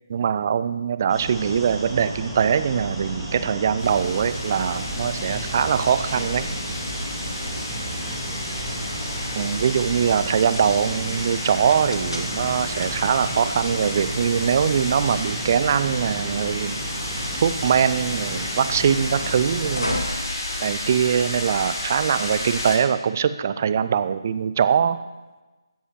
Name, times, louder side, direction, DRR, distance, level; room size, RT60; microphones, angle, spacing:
voice 1, 0.1-6.5 9.3-16.8 17.4-20.1 20.6-25.0, right 7 dB, 30° right, 13 dB, 0.5 m, -22 dB
sound 1, 1.1-20.0, right 1 dB, ahead, 2.1 m, -33 dB
sound 2, 2.2-21.3, left 1 dB, 80° left, 2.6 m, -39 dB
sound 3, 3.8-22.8, left 1 dB, 45° left, 4.4 m, -32 dB
16.0 x 11.0 x 3.1 m, 1.2 s
figure-of-eight pair, 150°, 3 cm